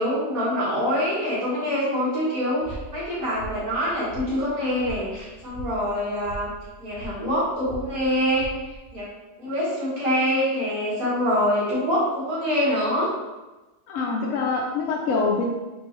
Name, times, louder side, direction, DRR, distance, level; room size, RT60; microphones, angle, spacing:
voice 1, 0.0-6.5 6.8-8.5 8.9-9.1 9.4-13.1, equal, 60° right, -9 dB, 2.1 m, -25 dB
sound 1, 2.6-9.0, right 2 dB, 15° left, 1.3 m, -41 dB
voice 2, 13.9-15.5, left 4 dB, 65° left, -2 dB, 0.9 m, -25 dB
4.3 x 3.1 x 3.1 m, 1.1 s
omnidirectional pair, 1.7 m